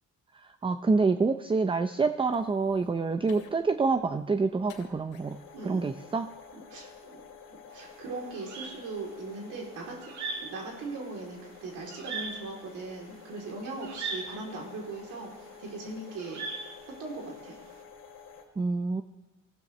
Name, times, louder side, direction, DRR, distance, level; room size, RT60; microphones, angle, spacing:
voice 1, 0.6-5.4 5.6-6.3 18.6-19.0, right 4 dB, 15° right, 10 dB, 0.5 m, -27 dB
sound 1, 2.2-18.4, left 6 dB, 85° left, 2.6 m, -51 dB
voice 2, 5.5-5.9 6.5-7.2 7.5-15.3 15.6-16.7 17.0-17.5, right 3 dB, 85° right, -2 dB, 3.3 m, -40 dB
sound 2, 7.7-17.7, right 4 dB, 65° right, 2.5 m, -39 dB
20.0 x 15.5 x 3.2 m, 1.2 s
cardioid pair, 90°, 30 cm